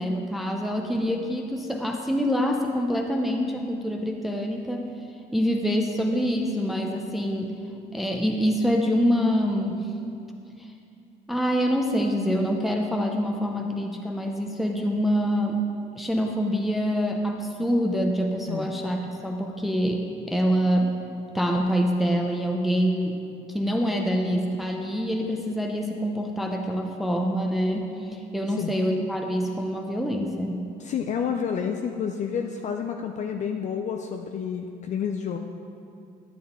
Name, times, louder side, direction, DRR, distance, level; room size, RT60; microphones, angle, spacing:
voice 1, 0.0-4.9 5.3-7.5 7.9-9.9 11.3-15.6 16.0-19.0 19.2-21.0 21.3-23.2 23.5-30.7, equal, ahead, 2 dB, 0.6 m, -25 dB
voice 2, 28.5-28.8 30.8-35.4, left 7 dB, 45° left, 4 dB, 0.4 m, -29 dB
11.0 x 7.1 x 3.7 m, 2.5 s
cardioid pair, 110°, 17 cm